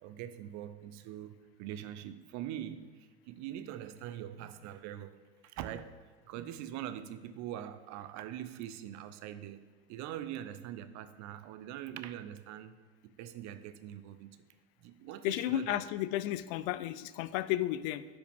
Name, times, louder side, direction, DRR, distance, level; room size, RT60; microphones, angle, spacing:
voice 1, 0.0-5.9 6.3-9.6 9.9-12.8 13.0-14.4 14.8-15.8, right 11 dB, 55° right, 11 dB, 0.6 m, -43 dB
voice 2, 15.2-18.0, left 14 dB, 70° left, 15 dB, 0.5 m, -33 dB
10.0 x 5.0 x 3.5 m, 1.5 s
hypercardioid pair, 90°, 33 cm